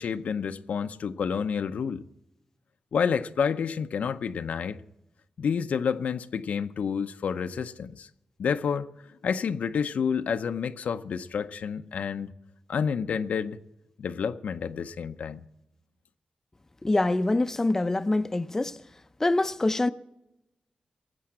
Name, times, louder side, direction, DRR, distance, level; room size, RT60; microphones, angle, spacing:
voice 1, 0.0-2.0 2.9-4.8 5.4-8.1 8.4-8.9 9.2-12.3 12.7-13.6 14.0-15.4, left 6 dB, 85° left, 0.6 m, -29 dB
voice 2, 16.8-18.8 19.2-19.9, left 2 dB, 20° left, 0.5 m, -25 dB
19.0 x 7.7 x 8.6 m
wide cardioid pair, 135°, 2 cm